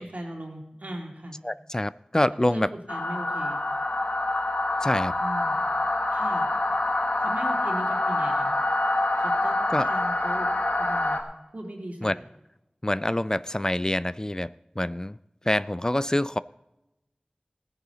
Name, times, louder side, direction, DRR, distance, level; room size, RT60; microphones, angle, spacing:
voice 1, 0.0-1.4 2.5-3.6 5.2-5.6 6.1-6.5 7.2-8.5 9.2-10.5 10.8-11.2 11.5-12.2, right 1 dB, 80° right, 2.8 m, -38 dB
voice 2, 1.4-2.7 4.8-5.1 9.7-9.9 12.0-12.1 12.8-14.5 14.8-15.2 15.5-16.4, left 1 dB, 25° left, 0.3 m, -26 dB
sound 1, 2.9-11.2, left 2 dB, 90° left, 1.2 m, -26 dB
17.0 x 9.9 x 3.9 m
wide cardioid pair, 45°, 3 cm